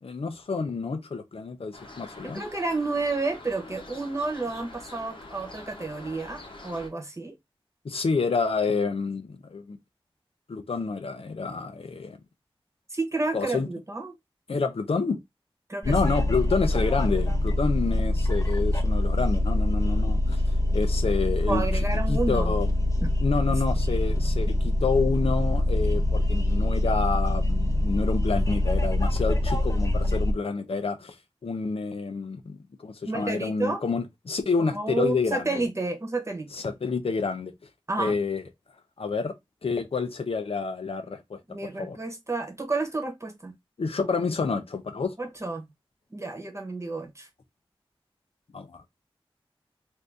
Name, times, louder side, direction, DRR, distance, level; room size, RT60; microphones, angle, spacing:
voice 1, 0.0-2.4 7.8-9.8 10.5-12.2 13.3-13.7 14.5-15.2 15.8-20.4 20.7-21.6 22.1-22.7 23.2-31.1 31.4-32.6 32.8-35.7 36.5-37.5 38.0-38.4 39.0-39.3 39.6-41.4 41.8-42.0 43.8-45.1 48.5-48.8, left 4 dB, 80° left, 0.6 m, -28 dB
sound 1, 1.7-6.9, left 2 dB, 60° left, 0.9 m, -45 dB
voice 2, 2.2-7.3 12.9-14.1 15.7-16.1 21.5-22.5 23.0-23.1 33.0-33.8 34.6-36.5 37.9-38.2 41.5-43.5 45.2-45.7 46.1-47.3, right 3 dB, 30° right, 1.0 m, -30 dB
sound 2, 15.8-30.3, left 1 dB, 35° left, 0.6 m, -24 dB
2.7 x 2.6 x 3.4 m
wide cardioid pair, 75°, 10 cm